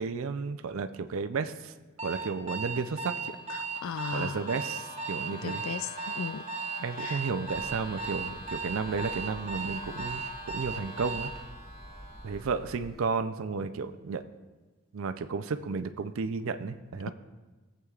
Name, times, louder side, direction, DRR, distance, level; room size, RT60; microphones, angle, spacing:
voice 1, 0.0-1.7 2.0-3.4 4.1-5.6 6.8-11.3 12.2-14.2 14.9-17.1, right 5 dB, 70° right, 0.5 m, -33 dB
Alarm, 2.0-11.4, right 4 dB, 30° right, 0.9 m, -36 dB
sound 1, 3.1-12.8, equal, 25° left, 1.5 m, -46 dB
voice 2, 3.8-4.4 5.3-6.4 7.0-7.2, left 6 dB, 70° left, 0.4 m, -36 dB
sound 2, 7.5-13.0, equal, ahead, 0.6 m, -49 dB
17.0 x 8.0 x 2.4 m
head